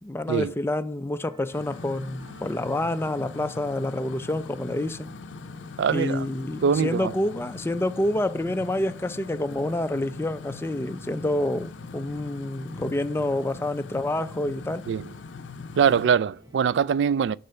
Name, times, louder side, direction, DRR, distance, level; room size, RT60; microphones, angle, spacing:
voice 1, 0.0-5.1 5.9-14.9, left 1 dB, 15° left, 0.4 m, -28 dB
sound 1, 1.3-16.8, equal, 25° right, 1.6 m, -54 dB
sound 2, 1.5-16.1, left 4 dB, 80° left, 0.5 m, -41 dB
voice 2, 5.8-6.3 6.6-7.1 14.9-15.0 15.8-17.4, right 7 dB, 70° right, 0.3 m, -22 dB
6.7 x 4.3 x 5.6 m
head